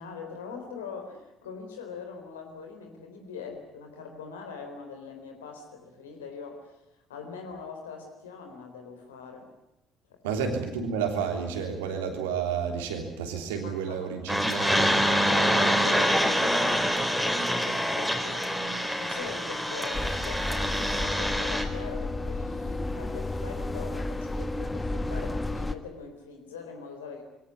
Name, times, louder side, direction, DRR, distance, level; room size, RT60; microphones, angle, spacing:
voice 1, 0.0-6.8 7.1-9.5 10.1-10.4 13.6-14.1 15.2-27.2, left 5 dB, 75° left, 4 dB, 3.9 m, -42 dB
voice 2, 10.2-14.9, right 6 dB, 75° right, 4 dB, 3.3 m, -31 dB
sound 1, 14.3-21.6, equal, ahead, 4.1 m, -26 dB
sound 2, 19.9-25.7, left 2 dB, 20° left, 1.5 m, -32 dB
22.5 x 17.5 x 9.8 m, 0.86 s
figure-of-eight pair, 50°, 0 cm